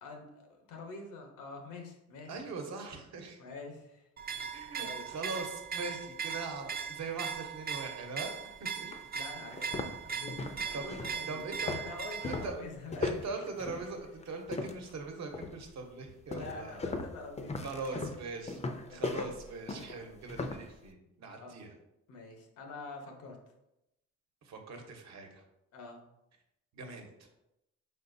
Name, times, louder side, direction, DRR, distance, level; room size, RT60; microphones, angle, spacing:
voice 1, 0.0-2.3 3.4-4.0 4.8-5.1 8.8-11.4 11.7-13.2 16.3-18.0 18.8-19.0 21.3-21.5 22.1-23.4 25.7-26.0, left 3 dB, 90° left, 3 dB, 1.0 m, -46 dB
voice 2, 2.3-3.4 4.5-8.3 8.6-8.9 10.7-10.9 11.3-11.7 12.3-12.5 13.0-16.8 17.6-18.6 18.9-21.7 24.4-25.4 26.7-27.3, right 3 dB, 65° right, 3 dB, 1.0 m, -41 dB
sound 1, 4.2-12.5, right 6 dB, 30° right, 0.5 m, -39 dB
sound 2, 8.3-8.4 8.9-9.0 9.5-15.0 15.3-15.7 16.3-20.7, left 3 dB, 20° left, 0.5 m, -38 dB
4.8 x 4.2 x 2.6 m, 0.87 s
cardioid pair, 90°, 30 cm